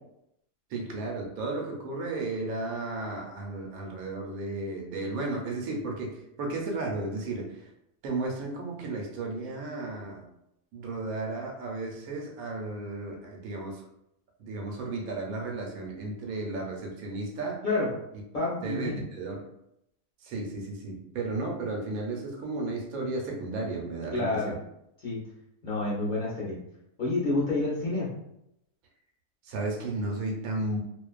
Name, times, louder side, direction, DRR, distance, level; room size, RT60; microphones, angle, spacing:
voice 1, 0.7-7.6 8.0-10.2 10.7-13.8 14.4-17.6 18.6-19.4 20.2-24.5 29.4-30.8, right 2 dB, 80° right, 0 dB, 1.1 m, -34 dB
voice 2, 18.3-19.0 24.1-24.5 25.0-25.2 25.6-26.6 27.0-28.1, left 2 dB, 45° left, -8 dB, 0.7 m, -28 dB
2.5 x 2.2 x 2.3 m, 0.80 s
omnidirectional pair, 1.5 m